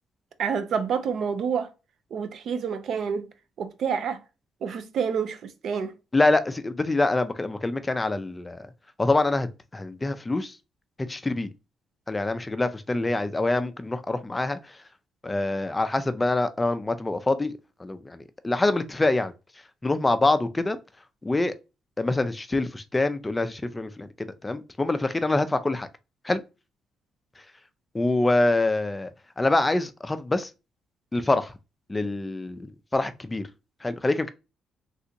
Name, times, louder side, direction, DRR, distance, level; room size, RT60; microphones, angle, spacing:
voice 1, 0.4-1.7 2.1-3.3 3.6-4.2 4.6-5.9, right 6 dB, 65° right, 0.5 m, -28 dB
voice 2, 6.1-8.7 9.0-9.5 9.7-10.5 11.1-11.5 12.1-14.6 15.2-17.5 17.8-19.3 19.8-20.8 21.2-21.5 22.0-24.1 24.4-25.9 26.2-26.4 27.9-29.1 29.4-30.5 31.1-31.5 31.9-33.4 33.8-34.3, left 2 dB, 20° left, 0.4 m, -25 dB
3.4 x 2.8 x 2.6 m
cardioid pair, 90°, 0 cm